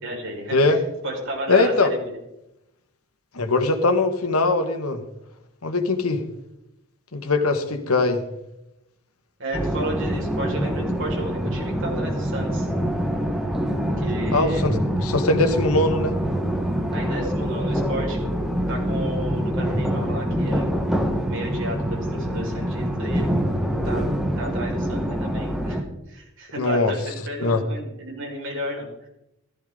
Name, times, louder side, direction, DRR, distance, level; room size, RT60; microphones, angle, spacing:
voice 1, 0.0-2.2 9.4-12.7 14.0-14.7 16.9-18.2 18.7-20.8 21.3-23.3 23.8-24.0 24.4-25.8 26.1-28.9, right 1 dB, 60° right, -1 dB, 5.5 m, -33 dB
voice 2, 1.5-1.9 3.4-5.0 5.6-6.2 7.1-8.2 14.3-14.7 15.0-16.1 26.6-26.9 27.4-27.6, left 3 dB, 85° left, 6 dB, 1.8 m, -21 dB
sound 1, 9.5-25.8, equal, ahead, 1.5 m, -25 dB
16.0 x 14.0 x 4.0 m, 0.85 s
head